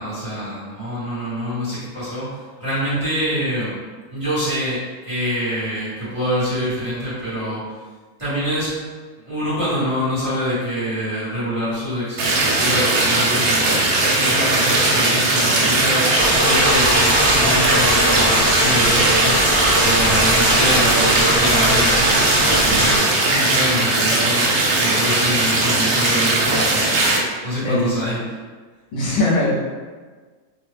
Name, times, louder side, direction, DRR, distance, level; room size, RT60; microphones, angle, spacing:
voice 1, 0.0-2.3 2.6-3.8 4.1-7.6 8.2-8.7 9.2-13.9 14.1-19.4 19.8-24.5 24.8-27.1 27.4-28.2, equal, 25° right, -12 dB, 1.1 m, -25 dB
sound 1, 12.2-27.2, right 2 dB, 80° right, 1.1 m, -18 dB
sound 2, 16.1-23.0, equal, 10° left, 0.4 m, -21 dB
voice 2, 27.6-28.1 28.9-29.8, left 1 dB, 75° left, -5 dB, 1.1 m, -21 dB
2.9 x 2.1 x 3.2 m, 1.4 s
omnidirectional pair, 1.5 m